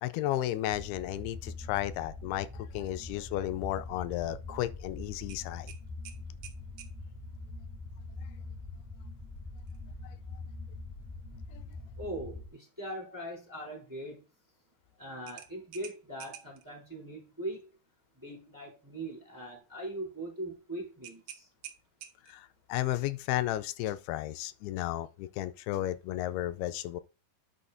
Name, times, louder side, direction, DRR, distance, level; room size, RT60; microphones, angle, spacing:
voice 1, 0.0-5.7 11.5-11.6 22.3-27.0, left 14 dB, 85° left, 2.5 m, -33 dB
sound 1, 0.7-12.5, left 3 dB, 30° right, 0.3 m, -43 dB
sound 2, 5.3-7.0 9.6-9.8 10.2-10.3 15.3-16.7 21.0-22.5, right 11 dB, 80° right, 2.9 m, -49 dB
voice 2, 12.0-14.2 15.0-17.7 18.2-21.5, right 1 dB, 5° right, 2.7 m, -41 dB
11.0 x 6.3 x 2.6 m
omnidirectional pair, 4.5 m